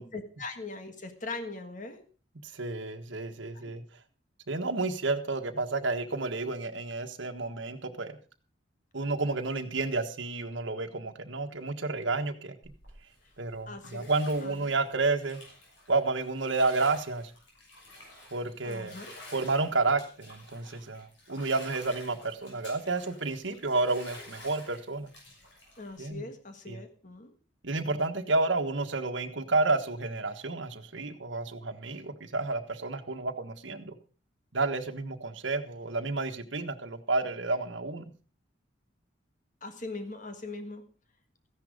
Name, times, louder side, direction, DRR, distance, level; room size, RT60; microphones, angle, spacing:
voice 1, 0.1-2.0 3.5-3.6 13.7-14.1 14.4-14.7 18.6-19.1 25.8-27.3 39.6-40.8, left 3 dB, 40° left, 7 dB, 1.6 m, -40 dB
voice 2, 2.4-3.8 4.5-8.2 8.9-12.5 13.4-15.4 15.9-17.3 18.3-19.0 19.3-25.1 26.0-26.3 26.7-26.8 27.6-33.9 34.5-38.1, right 3 dB, 70° right, 6 dB, 1.4 m, -30 dB
Bathtub (filling or washing), 12.6-26.1, left 1 dB, 70° left, 6.4 m, -51 dB
14.5 x 10.5 x 5.1 m, 0.38 s
head